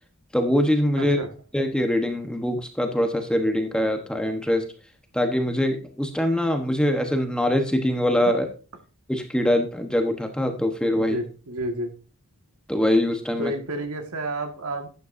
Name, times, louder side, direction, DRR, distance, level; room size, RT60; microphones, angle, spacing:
voice 1, 0.3-1.2 1.5-4.7 5.1-8.4 9.1-11.1 12.7-13.5, left 1 dB, 5° left, 5 dB, 1.0 m, -23 dB
voice 2, 1.0-1.3 8.2-8.3 10.9-11.9 13.4-14.9, right 1 dB, 70° right, 5 dB, 1.7 m, -30 dB
12.0 x 9.3 x 2.6 m, 0.35 s
head